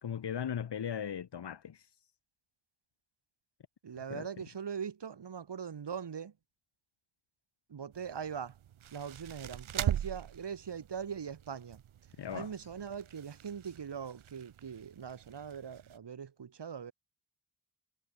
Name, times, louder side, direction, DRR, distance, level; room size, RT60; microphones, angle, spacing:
voice 1, 0.0-2.0 4.1-4.3 12.2-12.5, left 8 dB, 55° left, 1.7 m, -38 dB
voice 2, 3.8-6.3 7.7-8.6 8.9-11.8 12.3-16.9, right 7 dB, 60° right, 2.8 m, -41 dB
sound 1, 7.9-16.0, right 10 dB, 85° right, 3.8 m, -41 dB
supercardioid pair, 50°, 48 cm